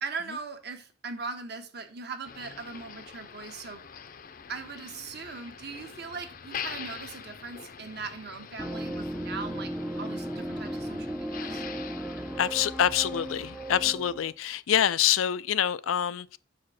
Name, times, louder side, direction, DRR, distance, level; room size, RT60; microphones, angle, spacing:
voice 1, 0.0-3.8 4.5-9.7 10.0-11.6, right 4 dB, 55° right, 1.4 m, -39 dB
Motor vehicle (road), 2.2-13.9, left 7 dB, 45° left, 0.6 m, -44 dB
sound 1, 8.6-14.3, right 1 dB, 5° right, 0.5 m, -36 dB
voice 2, 12.4-16.4, left 10 dB, 90° left, 0.4 m, -26 dB
7.0 x 5.0 x 5.8 m
head